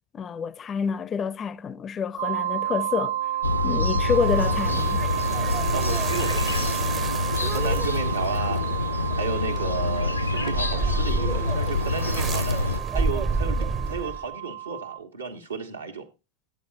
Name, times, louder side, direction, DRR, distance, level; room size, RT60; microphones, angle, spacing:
voice 1, 0.1-3.2 3.6-5.0, left 6 dB, 25° left, 0.5 m, -28 dB
sound 1, 2.2-15.0, right 13 dB, 60° right, 0.6 m, -32 dB
sound 2, 3.4-12.8, left 4 dB, 80° left, 0.5 m, -26 dB
sound 3, 3.9-14.3, right 4 dB, 20° right, 0.6 m, -31 dB
voice 2, 5.7-6.9 7.4-8.7 9.2-12.6 12.9-16.1, right 5 dB, 75° right, 1.5 m, -33 dB
10.5 x 8.1 x 3.9 m
figure-of-eight pair, 90°, 0 cm